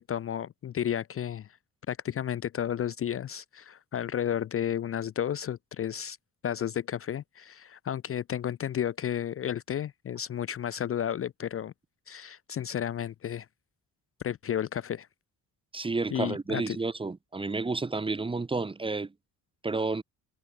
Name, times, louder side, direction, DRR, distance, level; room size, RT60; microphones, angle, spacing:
voice 1, 0.0-1.5 1.9-6.2 6.4-11.7 12.1-13.5 14.2-15.1 16.1-16.8, left 9 dB, 35° left, 0.6 m, -32 dB
voice 2, 15.7-19.1 19.6-20.0, right 3 dB, 15° right, 0.9 m, -31 dB
cardioid pair, 175°, 37 cm